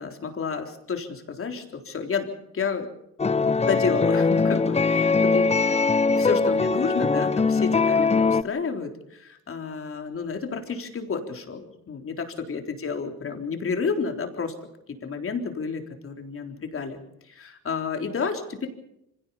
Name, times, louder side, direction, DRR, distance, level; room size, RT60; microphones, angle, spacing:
voice 1, 0.0-2.9 3.7-5.5 6.1-14.5 15.0-17.0 17.3-18.7, left 5 dB, 45° left, 4 dB, 3.9 m, -30 dB
sound 1, 3.2-8.4, left 4 dB, 20° left, 0.7 m, -21 dB
25.0 x 17.0 x 7.1 m, 0.81 s
cardioid pair, 90°, 30 cm